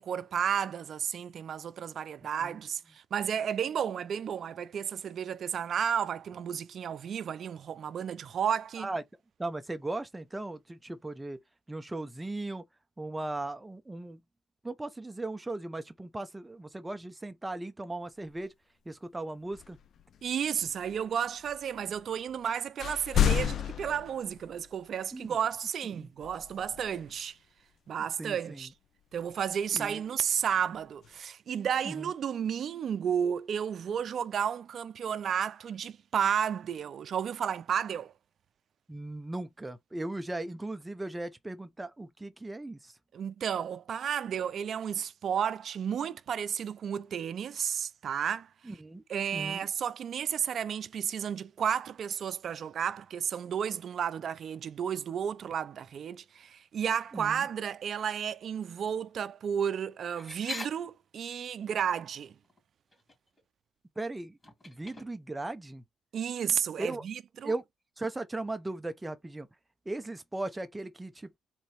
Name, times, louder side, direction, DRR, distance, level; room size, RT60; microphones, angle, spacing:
voice 1, 0.0-8.9 20.2-27.4 27.9-28.7 29.1-38.1 43.1-48.5 49.1-62.3 66.1-67.5, right 8 dB, 60° right, 0.5 m, -32 dB
voice 2, 9.4-11.4 11.7-12.6 13.0-14.2 14.6-18.5 18.9-19.8 25.1-25.4 26.0-26.1 28.2-28.6 29.7-30.0 31.8-32.1 38.9-42.9 48.7-49.0 49.3-49.7 57.1-57.5 64.0-64.4 64.6-65.8 66.8-67.0 67.4-67.6 68.0-69.5 69.9-71.4, right 2 dB, 15° right, 0.7 m, -37 dB
sound 1, 18.3-18.4 19.4-22.5 22.8-25.0 26.2-27.3 29.1-29.7 30.3-31.2, left 9 dB, 60° left, 0.5 m, -33 dB
sound 2, 60.1-60.7 62.4-62.6 62.9-63.4 64.4-65.4, left 2 dB, 25° left, 3.0 m, -41 dB
3.9 x 3.0 x 4.2 m
cardioid pair, 90°, 0 cm